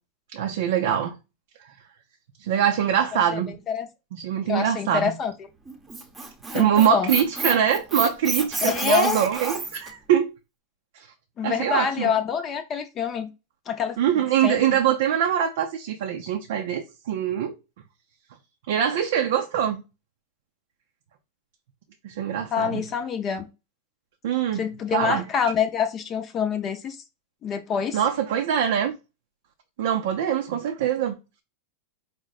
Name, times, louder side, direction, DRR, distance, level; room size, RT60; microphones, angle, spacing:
voice 1, 0.3-1.2 2.4-3.6 4.1-5.1 6.5-10.3 11.4-12.1 14.0-17.5 18.7-19.8 22.0-22.9 24.2-24.6 24.9-25.3 27.9-29.0 29.8-31.2, right 9 dB, 70° right, 0.6 m, -23 dB
voice 2, 4.5-5.3 6.5-7.1 8.6-9.2 11.4-13.3 13.7-14.0 14.4-14.8 22.5-23.5 24.5-27.0 27.4-28.0, left 7 dB, 30° left, 0.6 m, -26 dB
Squeak, 5.7-9.9, right 3 dB, 15° right, 0.8 m, -30 dB
5.0 x 2.1 x 4.1 m
supercardioid pair, 130°, 0 cm